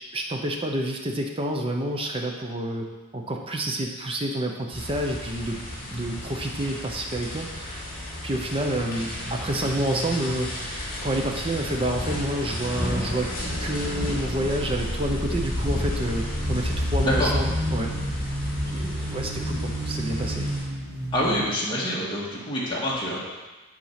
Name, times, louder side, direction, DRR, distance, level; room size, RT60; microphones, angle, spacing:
voice 1, 0.1-5.6 5.9-7.9 8.2-13.3 13.6-18.2 18.7-20.5, right 1 dB, 25° right, 2 dB, 0.8 m, -29 dB
sound 1, 4.7-20.6, left 1 dB, 40° left, 2.2 m, -31 dB
sound 2, 5.8-6.7 8.3-12.8 13.2-13.7 15.1-21.4, right 1 dB, 50° right, 1.7 m, -34 dB
voice 2, 21.1-23.2, equal, 20° left, -7 dB, 1.8 m, -26 dB
10.0 x 4.4 x 5.9 m, 1.2 s
head